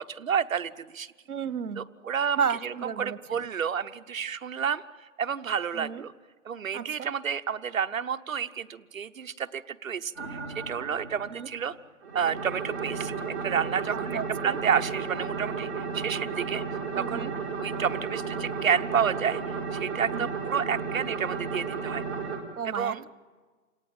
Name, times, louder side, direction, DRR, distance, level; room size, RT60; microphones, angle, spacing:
voice 1, 0.0-1.1 1.7-4.8 5.2-6.1 6.4-11.7 12.1-16.6 16.9-17.3 17.6-19.4 19.7-22.0 22.6-23.0, right 7 dB, 65° right, 8 dB, 0.9 m, -30 dB
voice 2, 1.3-1.9 2.4-3.2 5.7-6.0 6.7-7.1 11.3-11.5 13.9-14.6 16.9-17.3 20.1-20.3 22.6-23.1, right 7 dB, 90° right, 17 dB, 1.0 m, -33 dB
sound 1, 10.1-11.6 12.0-22.4, right 5 dB, 5° left, 1.8 m, -33 dB
28.5 x 18.5 x 8.9 m, 1.5 s
hypercardioid pair, 180°, 44 cm